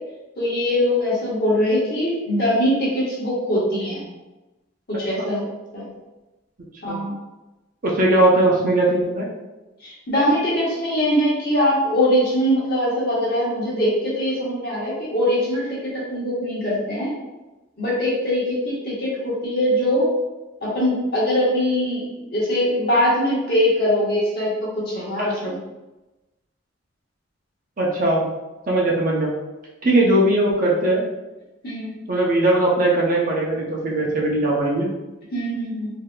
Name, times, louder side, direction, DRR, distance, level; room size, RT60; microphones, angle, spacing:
voice 1, 0.4-4.0 4.9-5.5 5.7-5.9 6.8-7.1 9.8-17.1 17.8-20.1 20.6-25.6 31.6-32.0 35.3-35.9, left 1 dB, 50° left, -6 dB, 1.2 m, -22 dB
voice 2, 7.8-9.3 25.2-25.5 27.8-28.2 28.7-29.3 29.8-31.0 32.1-34.9, right 1 dB, 40° right, -3 dB, 0.6 m, -19 dB
3.8 x 2.7 x 2.2 m, 1.1 s
head